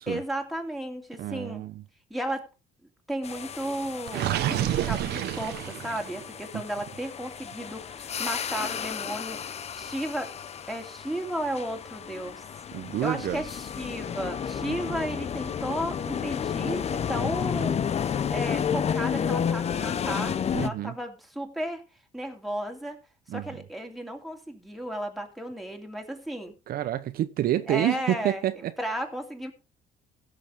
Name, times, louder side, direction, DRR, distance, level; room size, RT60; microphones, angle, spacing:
voice 1, 0.1-1.6 2.1-2.5 3.1-10.3 10.7-12.4 13.0-17.8 18.3-21.8 22.1-23.0 23.3-26.5 27.7-28.4 28.8-29.5, right 1 dB, ahead, 2.9 m, -34 dB
voice 2, 1.2-1.8 6.5-6.6 12.7-13.4 14.7-14.8 20.5-20.9 23.3-23.4 26.7-28.7, right 13 dB, 60° right, 0.8 m, -28 dB
sound 1, 3.2-20.7, left 7 dB, 40° left, 0.8 m, -32 dB
Gurgling, 4.1-6.2, right 13 dB, 80° right, 1.1 m, -29 dB
16.0 x 6.9 x 5.0 m
cardioid pair, 110°, 17 cm